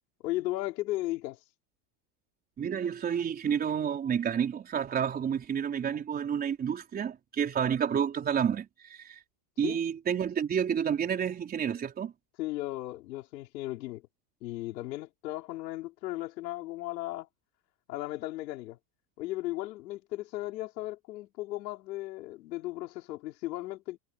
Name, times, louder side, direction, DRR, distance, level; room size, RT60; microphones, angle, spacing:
voice 1, 0.2-1.4 9.6-9.8 12.4-14.0 14.4-17.3 17.9-18.8 19.2-24.0, left 17 dB, 85° left, 5.4 m, -36 dB
voice 2, 2.6-9.2 9.6-12.1, right 8 dB, 20° right, 4.4 m, -30 dB
supercardioid pair, 170°, 48 cm